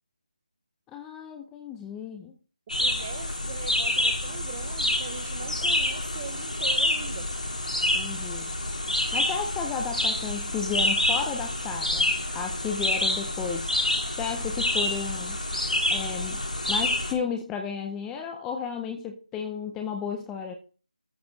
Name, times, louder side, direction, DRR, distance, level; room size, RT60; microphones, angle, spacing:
voice 1, 0.9-2.4 7.9-8.5 9.1-13.7 14.2-15.4 15.9-16.4 16.7-20.5, left 6 dB, 5° left, 0.6 m, -33 dB
sound 1, 2.7-17.1, left 1 dB, 80° left, 3.4 m, -27 dB
voice 2, 2.7-7.3, right 7 dB, 20° right, 0.8 m, -41 dB
13.5 x 6.9 x 4.0 m
figure-of-eight pair, 165°, 4 cm